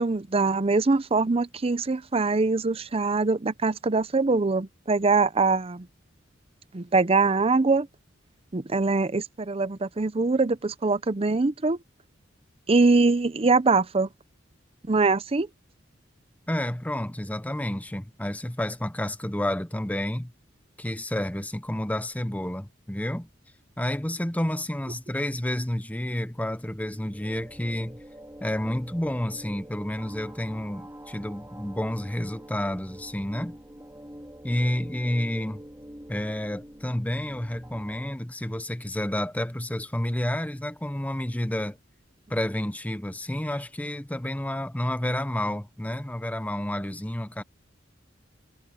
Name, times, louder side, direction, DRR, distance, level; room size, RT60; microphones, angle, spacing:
voice 1, 0.0-5.9 6.7-7.9 8.5-11.8 12.7-14.1 14.9-15.5, right 3 dB, 30° right, 0.6 m, -23 dB
voice 2, 16.5-20.3 20.8-23.3 23.8-28.0 28.4-33.6 34.4-35.6 36.1-41.8 42.3-47.4, left 1 dB, 10° left, 0.8 m, -30 dB
sound 1, 26.6-38.2, right 1 dB, 15° right, 3.4 m, -46 dB
head